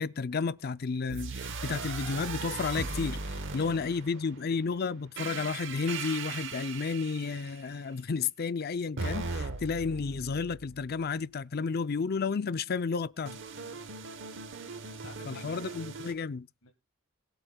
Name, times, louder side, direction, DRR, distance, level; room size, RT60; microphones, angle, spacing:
voice 1, 0.0-13.4 15.3-16.5, left 5 dB, 45° left, 0.5 m, -32 dB
sound 1, 1.1-4.4 5.2-7.7 9.0-11.1 13.3-16.1, right 4 dB, 60° right, 1.1 m, -38 dB
voice 2, 3.5-3.9 4.2-4.3 13.7-14.1 15.0-15.8 16.6-16.7, left 3 dB, 90° left, 1.8 m, -52 dB
22.0 x 7.9 x 2.3 m
head